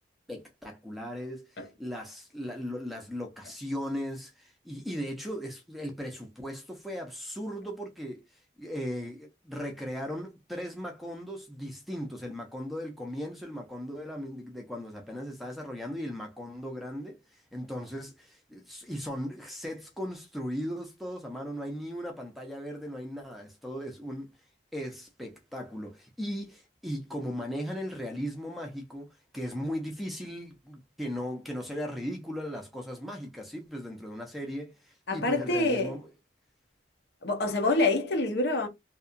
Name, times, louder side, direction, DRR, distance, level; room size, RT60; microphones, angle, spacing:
voice 1, 0.3-8.2 8.6-24.3 24.7-36.1, equal, ahead, 0.5 m, -37 dB
voice 2, 35.1-35.9 37.2-38.7, left 2 dB, 60° left, 0.7 m, -26 dB
2.7 x 2.3 x 2.5 m
head